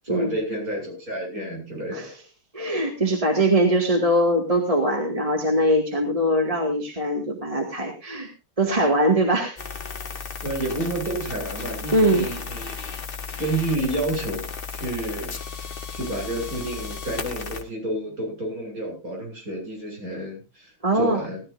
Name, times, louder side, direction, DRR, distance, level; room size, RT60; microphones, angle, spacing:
voice 1, 0.0-2.1 10.4-12.8 13.4-15.6 15.9-21.4, right 1 dB, 40° right, -1 dB, 8.4 m, -30 dB
voice 2, 2.5-8.3 8.6-9.6 11.9-12.3 20.8-21.2, right 1 dB, 15° right, 2 dB, 2.1 m, -22 dB
sound 1, 9.6-17.6, left 5 dB, 30° left, 1.3 m, -34 dB
19.0 x 14.0 x 2.6 m, 0.28 s
omnidirectional pair, 2.2 m